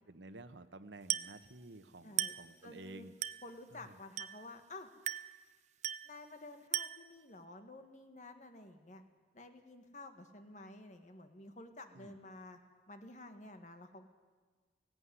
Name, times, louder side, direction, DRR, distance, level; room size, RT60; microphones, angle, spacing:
voice 1, 0.0-3.1 3.7-4.0 11.9-12.2, right 2 dB, 80° right, 10 dB, 1.1 m, -52 dB
Glass, 1.1-1.4 2.2-2.5 3.2-3.5 4.2-4.5 5.1-5.4 5.8-6.2 6.7-7.1, right 11 dB, 40° right, 0.6 m, -37 dB
voice 2, 2.0-2.4 2.6-3.1 3.4-4.9 6.0-9.0 9.3-12.6 12.9-14.0, left 2 dB, 45° left, 7 dB, 1.7 m, -51 dB
17.5 x 16.5 x 9.9 m, 1.5 s
head